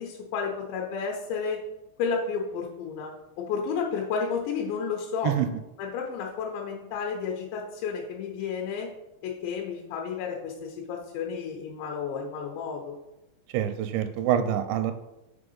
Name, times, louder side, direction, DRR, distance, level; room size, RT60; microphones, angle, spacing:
voice 1, 0.0-1.6 2.0-5.3 5.8-8.9 9.2-12.9, left 6 dB, 90° left, -1 dB, 3.0 m, -32 dB
voice 2, 13.5-14.9, right 10 dB, 85° right, 9 dB, 2.8 m, -26 dB
6.9 x 3.8 x 5.3 m, 0.93 s
omnidirectional pair, 5.2 m